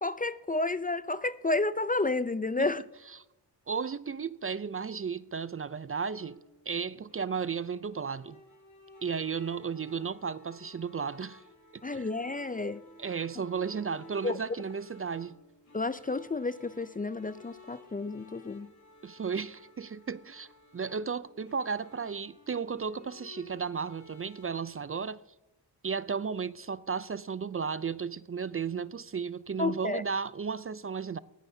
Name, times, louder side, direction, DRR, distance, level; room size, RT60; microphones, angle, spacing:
voice 1, 0.0-2.8 11.8-12.8 14.2-14.4 15.7-18.7 29.6-30.0, left 3 dB, 20° left, 0.4 m, -31 dB
voice 2, 3.7-8.4 9.0-11.4 11.9-12.1 13.0-15.4 19.0-20.5 20.7-25.2 25.8-31.2, right 6 dB, 30° right, 0.5 m, -34 dB
sound 1, 5.9-24.8, left 1 dB, 40° left, 4.0 m, -55 dB
19.5 x 15.0 x 2.7 m
cardioid pair, 60°, 43 cm